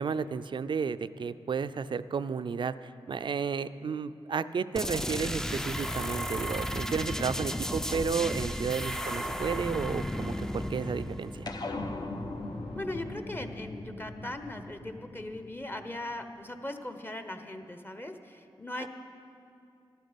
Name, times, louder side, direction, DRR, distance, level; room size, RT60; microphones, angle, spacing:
voice 1, 0.0-11.5 18.8-18.9, right 6 dB, 60° right, 14 dB, 0.4 m, -32 dB
sound 1, 4.8-12.3, equal, 5° left, 0.5 m, -34 dB
sound 2, 5.8-14.0 14.5-15.0, equal, 85° left, 3.2 m, -53 dB
sound 3, 11.5-16.2, left 2 dB, 45° left, 1.0 m, -40 dB
voice 2, 12.7-18.9, left 1 dB, 25° left, 7 dB, 1.0 m, -39 dB
13.0 x 12.0 x 5.2 m, 2.6 s
cardioid pair, 60°, 9 cm